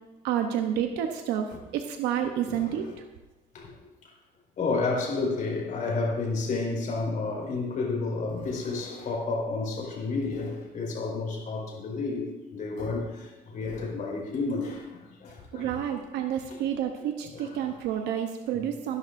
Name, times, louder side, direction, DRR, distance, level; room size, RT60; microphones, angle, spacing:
voice 1, 0.2-2.8 15.5-19.0, right 9 dB, 90° right, 0.9 m, -29 dB
voice 2, 2.4-3.0 3.5-3.7 4.6-15.8 16.5-16.6 17.3-17.6, left 3 dB, 55° left, 4.6 m, -31 dB
19.0 x 11.0 x 2.6 m
cardioid pair, 110°, 17 cm